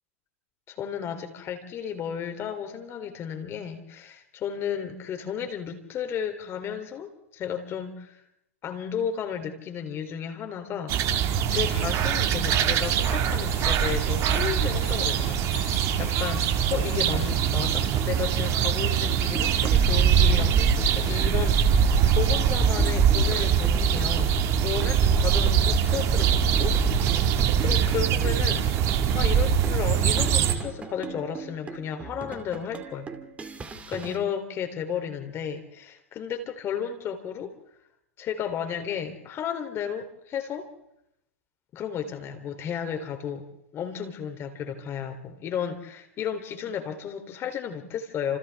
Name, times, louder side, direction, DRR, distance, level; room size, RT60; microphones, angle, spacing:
voice 1, 0.7-8.2 8.6-11.2 11.5-26.8 27.6-28.8 29.1-33.1 33.9-37.5 38.2-40.7 41.7-43.5 43.7-48.4, left 8 dB, 35° left, 6 dB, 3.1 m, -33 dB
sound 1, 10.9-30.6, right 8 dB, 40° right, 1.9 m, -23 dB
Bicycle, 12.8-18.5, left 7 dB, 75° left, 4.5 m, -45 dB
sound 2, 17.3-34.2, right 4 dB, 15° right, 2.2 m, -41 dB
29.5 x 27.0 x 3.5 m, 0.83 s
hypercardioid pair, 110°, 8 cm